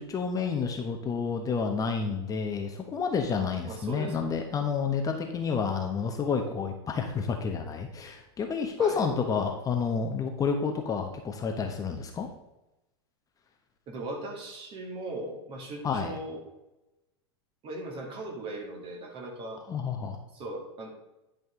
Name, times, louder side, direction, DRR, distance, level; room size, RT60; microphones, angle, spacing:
voice 1, 0.0-12.3 15.8-16.1 19.7-20.2, left 5 dB, 25° left, 4 dB, 1.1 m, -30 dB
voice 2, 3.7-4.3 8.8-9.0 13.9-16.4 17.6-19.6 20.3-20.9, right 2 dB, 40° right, 1 dB, 2.7 m, -38 dB
10.5 x 5.3 x 3.8 m, 0.95 s
hypercardioid pair, 105°, 14 cm